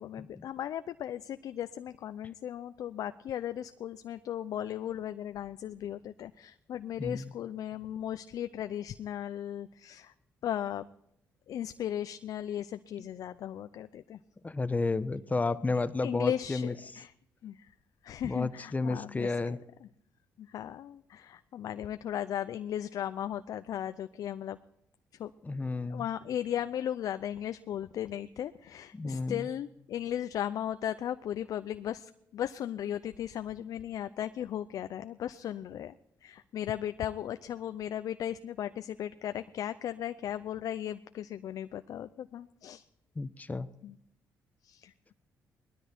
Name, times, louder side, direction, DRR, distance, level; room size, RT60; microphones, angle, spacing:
voice 1, 0.0-10.1 10.4-10.9 11.5-14.2 15.7-17.1 17.4-17.7 18.0-19.6 19.8-19.9 20.4-24.6 25.1-25.3 25.9-35.9 36.2-42.9 43.8-44.0 44.6-45.1, left 10 dB, 70° left, 11 dB, 0.6 m, -37 dB
voice 2, 7.0-7.3 14.4-16.7 18.2-19.6 25.4-26.1 28.9-29.5 43.2-43.7, left 3 dB, 25° left, 13 dB, 1.0 m, -31 dB
19.5 x 13.0 x 4.4 m, 0.77 s
supercardioid pair, 65°, 6 cm